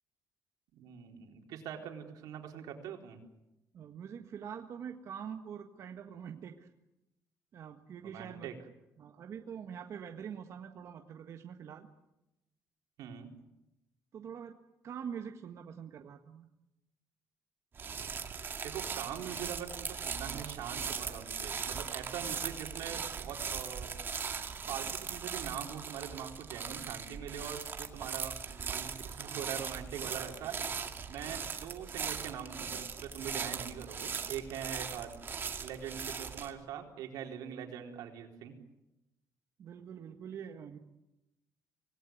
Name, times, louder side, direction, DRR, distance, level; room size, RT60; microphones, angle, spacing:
voice 1, 0.7-3.2 8.0-8.5 13.0-13.3 18.6-23.9 24.7-30.5 31.1-35.2 35.6-38.5, right 9 dB, 90° right, 3 dB, 4.1 m, -43 dB
voice 2, 3.7-6.7 7.5-8.5 9.0-11.9 14.1-14.6 14.8-16.5 39.6-40.8, right 7 dB, 50° right, 5 dB, 1.6 m, -44 dB
sound 1, 17.7-36.5, right 6 dB, 35° right, 2.2 m, -39 dB
25.5 x 19.0 x 9.3 m, 0.93 s
cardioid pair, 135°, 6 cm